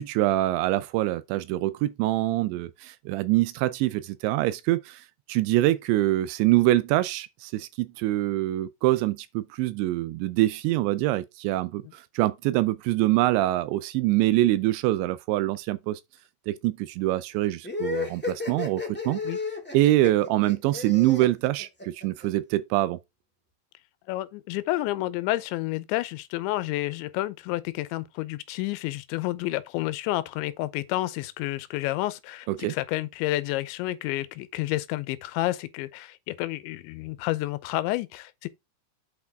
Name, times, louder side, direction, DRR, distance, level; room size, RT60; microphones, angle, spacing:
voice 1, 0.0-16.0 16.5-19.2 19.7-23.0 32.5-32.8, right 16 dB, 85° right, 2.9 m, -25 dB
sound 1, 17.6-22.3, left 4 dB, 15° left, 0.4 m, -33 dB
voice 2, 24.1-38.5, left 17 dB, 85° left, 3.0 m, -30 dB
8.5 x 6.0 x 3.6 m
omnidirectional pair, 5.1 m